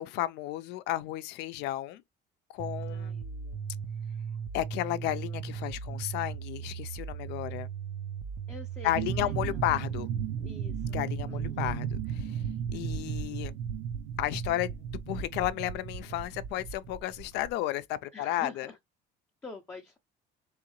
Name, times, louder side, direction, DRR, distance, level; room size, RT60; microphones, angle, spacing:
voice 1, 0.0-2.0 2.5-3.6 4.5-7.7 8.8-10.1 10.9-12.4 12.7-13.5 14.2-14.7 15.1-18.7, left 14 dB, 70° left, 0.5 m, -33 dB
sound 1, 2.6-12.6, right 7 dB, 35° right, 0.4 m, -38 dB
voice 2, 2.9-3.2 8.5-8.9 9.2-9.6 10.4-11.0 11.3-11.7 18.1-18.8 19.4-20.0, left 3 dB, 10° left, 0.6 m, -46 dB
sound 2, 8.9-17.5, right 7 dB, 80° right, 0.8 m, -35 dB
3.7 x 3.1 x 3.0 m
cardioid pair, 175°, 18 cm